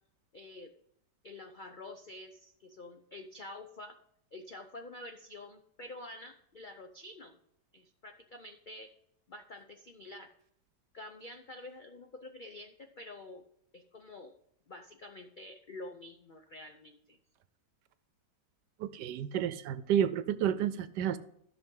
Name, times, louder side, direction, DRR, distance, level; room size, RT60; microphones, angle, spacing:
voice 1, 0.3-0.7 1.2-3.9 4.3-7.4 7.7-8.9 9.3-10.3 10.9-13.4 13.7-14.3 14.7-17.2, left 2 dB, 75° left, 6 dB, 0.4 m, -48 dB
voice 2, 18.8-21.2, right 9 dB, 85° right, 14 dB, 1.2 m, -30 dB
13.5 x 6.0 x 3.8 m, 0.72 s
omnidirectional pair, 1.8 m